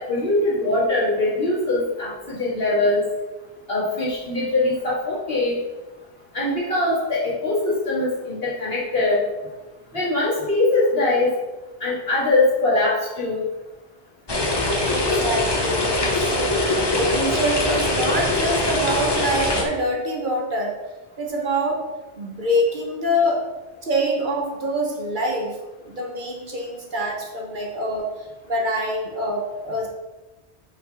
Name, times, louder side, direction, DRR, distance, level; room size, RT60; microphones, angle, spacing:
voice 1, 0.0-3.0 3.7-5.6 6.3-9.2 9.9-11.3 11.8-13.5, left 2 dB, 60° left, -7 dB, 2.6 m, -22 dB
sound 1, 14.3-19.6, left 2 dB, 25° left, 0.8 m, -22 dB
voice 2, 14.8-20.7 21.2-21.8 22.2-23.4 23.8-25.6 25.8-29.9, equal, 50° right, 0 dB, 1.2 m, -25 dB
5.6 x 4.7 x 4.8 m, 1.1 s
omnidirectional pair, 1.1 m